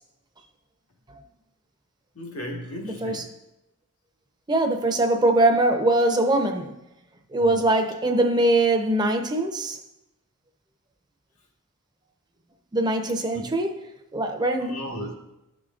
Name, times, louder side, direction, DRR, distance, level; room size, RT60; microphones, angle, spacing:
voice 1, 2.1-3.4 7.4-7.7 13.3-13.5 14.6-15.1, equal, 80° left, 1.5 m, -36 dB
voice 2, 2.8-3.2 4.5-6.7 7.3-9.8 12.7-13.7 14.1-14.7, right 2 dB, 20° right, 0.6 m, -22 dB
12.5 x 5.0 x 2.4 m
head